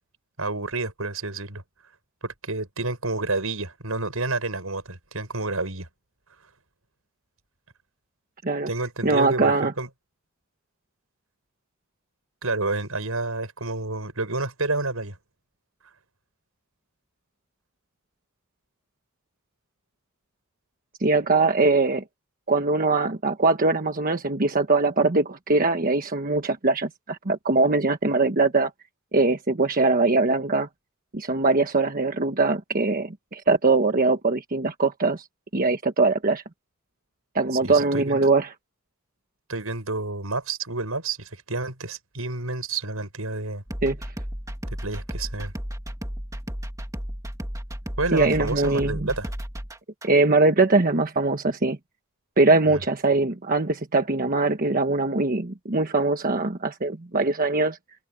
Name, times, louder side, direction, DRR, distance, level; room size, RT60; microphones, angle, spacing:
voice 1, 0.4-1.6 2.2-5.9 8.7-9.9 12.4-15.1 37.6-38.2 39.5-43.6 44.8-45.5 48.0-49.3 52.7-52.8, right 3 dB, 85° right, 6.7 m, -29 dB
voice 2, 9.0-9.7 21.0-22.0 22.5-28.7 29.1-30.7 31.1-35.3 35.5-36.4 37.3-38.5 43.8-44.0 48.1-49.1 50.0-51.8 52.4-57.8, right 3 dB, 40° right, 1.3 m, -22 dB
sound 1, 43.7-50.1, equal, 15° right, 2.3 m, -34 dB
head